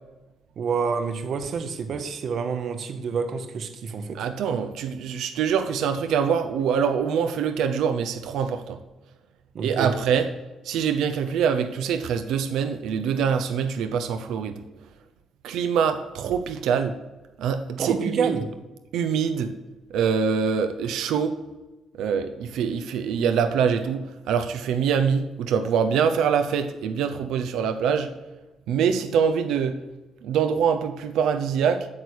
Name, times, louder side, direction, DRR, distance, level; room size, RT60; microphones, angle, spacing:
voice 1, 0.6-4.3 9.5-10.0 17.8-18.5, right 5 dB, 45° right, 0.9 m, -28 dB
voice 2, 4.1-8.8 9.6-10.3 10.6-14.5 15.4-17.0 17.4-18.4 18.9-19.5 19.9-21.4 22.0-28.1 28.7-29.8 30.2-31.9, right 7 dB, 85° right, 0.8 m, -24 dB
8.8 x 6.3 x 8.5 m
cardioid pair, 170°, 0 cm